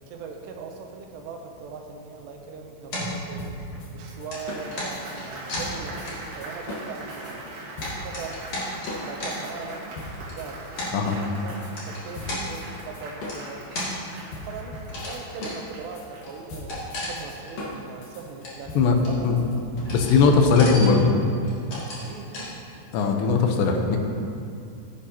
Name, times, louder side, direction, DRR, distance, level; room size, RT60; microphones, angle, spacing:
voice 1, 0.1-3.5 3.9-7.6 8.0-8.5 9.0-11.6 11.9-13.7 14.3-19.4 20.0-20.6 22.0-22.6, right 5 dB, 80° right, 3 dB, 2.7 m, -40 dB
sound 1, 2.9-3.9 4.3-6.5 6.8-6.9 7.4-9.3 10.2-10.3 10.7-10.9 11.7-12.4 13.3-13.9 14.8-15.1 15.4-15.6 15.9-16.0 16.2-17.5 17.8-17.9 18.2-18.7 19.0-19.5 19.8-20.2 20.4-21.0 21.4-22.1 22.3-22.5, left 1 dB, 40° left, 2.9 m, -34 dB
sound 2, 3.4-7.3 7.8-8.5 8.9-11.7 12.1-20.8, left 1 dB, 60° left, 2.6 m, -38 dB
Applause, 4.0-16.7, right 2 dB, 55° right, 2.8 m, -41 dB
voice 2, 19.9-21.1 22.9-24.0, left 5 dB, 80° left, 3 dB, 3.0 m, -19 dB
16.0 x 9.2 x 2.9 m, 2.5 s
omnidirectional pair, 5.2 m